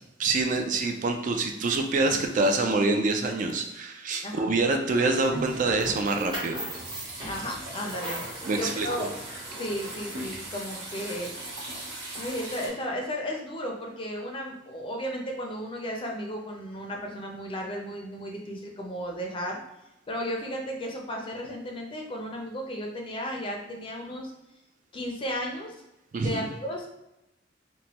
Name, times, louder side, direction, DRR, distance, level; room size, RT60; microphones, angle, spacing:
voice 1, 0.2-6.6 7.0-7.1 8.5-9.1 26.1-26.4, right 3 dB, 45° right, 4 dB, 0.3 m, -26 dB
sound 1, 5.1-12.7, right 1 dB, 90° right, 1.0 m, -39 dB
sound 2, 5.8-10.5, right 1 dB, 25° right, 0.9 m, -39 dB
voice 2, 7.2-8.2 8.5-9.2 9.6-11.3 12.1-19.6 20.1-24.3 24.9-25.7 26.2-26.9, equal, 30° left, 1 dB, 0.5 m, -34 dB
3.0 x 2.1 x 2.8 m, 0.91 s
head